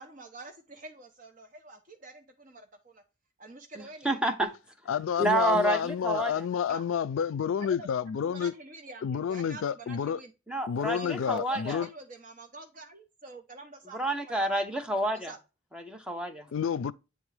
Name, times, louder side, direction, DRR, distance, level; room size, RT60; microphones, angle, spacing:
voice 1, 0.0-3.0 3.4-4.2 6.7-6.8 7.6-7.9 8.2-10.3 10.9-14.6 15.1-15.4, right 3 dB, 40° right, 0.7 m, -47 dB
voice 2, 4.0-4.5 5.2-6.4 10.5-11.8 13.9-15.3 15.7-16.5, right 1 dB, 5° right, 0.8 m, -29 dB
voice 3, 4.9-8.5 9.0-10.2 10.7-11.9 16.5-16.9, left 7 dB, 80° left, 0.4 m, -29 dB
8.3 x 3.6 x 3.3 m
head